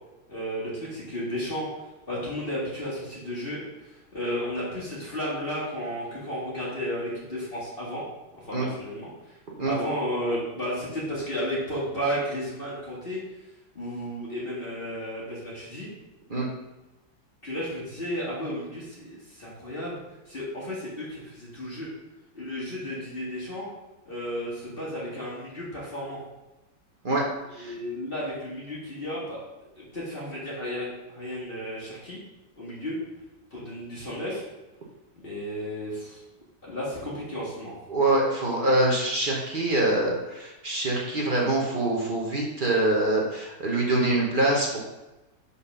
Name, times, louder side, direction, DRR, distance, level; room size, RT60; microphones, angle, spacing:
voice 1, 0.3-8.0 8.3-9.4 9.7-13.2 13.7-15.9 17.4-20.0 20.3-21.9 22.3-23.7 24.1-26.2 27.6-29.4 29.8-32.2 32.6-33.0 33.5-34.4 35.1-36.2 36.6-37.7, equal, 30° left, -7 dB, 2.2 m, -33 dB
voice 2, 37.9-44.8, right 2 dB, 35° right, -2 dB, 1.1 m, -24 dB
5.6 x 4.3 x 5.6 m, 1.0 s
omnidirectional pair, 1.9 m